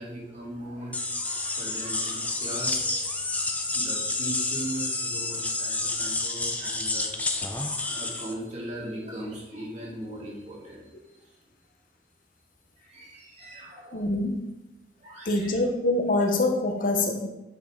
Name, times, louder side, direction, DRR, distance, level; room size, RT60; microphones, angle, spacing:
voice 1, 0.0-3.2 3.7-7.1 7.4-10.9 12.8-14.2 15.0-15.6, right 1 dB, 40° right, -4 dB, 2.3 m, -39 dB
sound 1, 0.9-8.3, left 2 dB, 10° left, 0.6 m, -29 dB
voice 2, 13.9-14.4 15.2-17.3, left 2 dB, 50° left, 4 dB, 0.9 m, -25 dB
8.1 x 6.4 x 3.7 m, 0.95 s
head